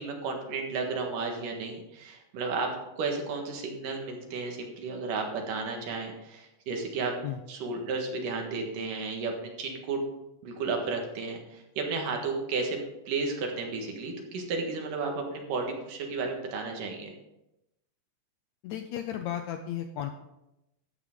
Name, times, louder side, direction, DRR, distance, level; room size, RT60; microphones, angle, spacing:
voice 1, 0.0-2.7 3.0-7.1 7.5-10.0 10.4-12.8 13.1-17.1, right 4 dB, 75° right, 2 dB, 3.2 m, -33 dB
voice 2, 18.6-20.1, left 10 dB, 80° left, 7 dB, 1.7 m, -34 dB
13.5 x 8.5 x 3.8 m, 0.90 s
omnidirectional pair, 3.8 m